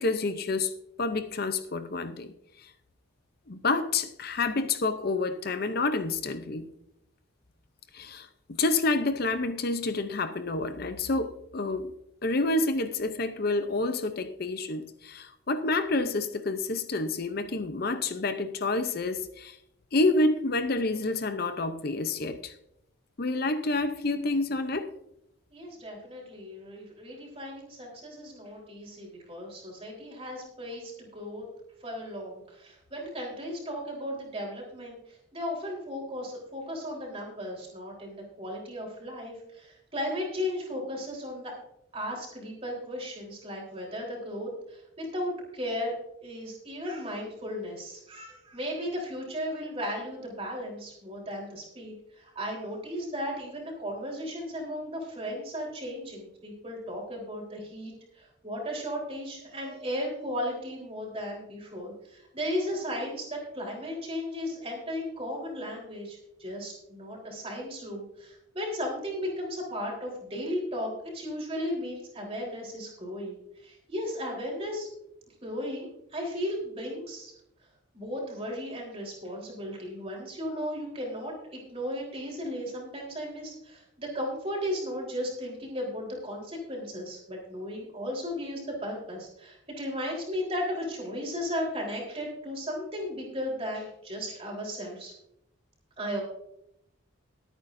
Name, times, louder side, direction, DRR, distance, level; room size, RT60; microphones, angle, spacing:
voice 1, 0.0-2.7 3.5-6.7 7.9-11.9 12.2-19.6 19.9-22.5 23.2-24.9, left 3 dB, 45° left, 0.6 m, -28 dB
voice 2, 25.5-31.4 31.8-41.5 41.9-45.9 46.2-74.9 75.4-77.3 77.9-95.1 96.0-96.2, equal, 30° right, 3.8 m, -35 dB
21.0 x 9.0 x 2.6 m
head